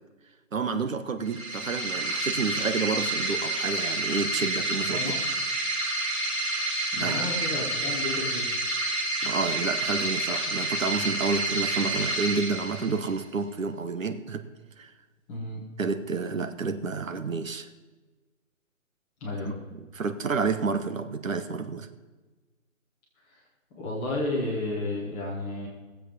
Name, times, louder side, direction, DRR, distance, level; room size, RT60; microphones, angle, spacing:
voice 1, 0.5-5.0 7.0-7.4 9.2-14.4 14.8-14.9 15.8-17.7 19.4-21.9, right 4 dB, 70° right, 10 dB, 1.2 m, -30 dB
sound 1, 1.2-13.2, right 2 dB, 35° right, 5.2 m, -29 dB
voice 2, 6.9-8.5 15.3-15.6 19.2-19.5 23.8-25.7, left 2 dB, 10° left, -6 dB, 1.4 m, -32 dB
18.5 x 7.7 x 5.1 m, 1.3 s
hypercardioid pair, 170°, 41 cm